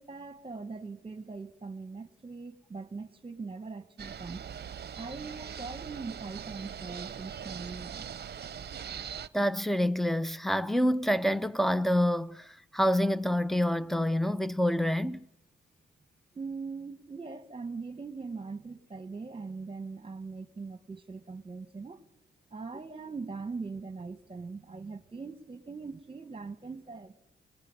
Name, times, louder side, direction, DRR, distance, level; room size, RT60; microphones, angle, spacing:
voice 1, 0.0-4.4 5.0-8.1 16.3-22.0 22.5-27.1, right 4 dB, 25° right, 1.7 m, -41 dB
sound 1, 4.0-9.3, right 8 dB, 55° right, 0.8 m, -41 dB
voice 2, 9.3-15.3, equal, ahead, 0.8 m, -27 dB
21.0 x 20.5 x 9.9 m
cardioid pair, 65°, 20 cm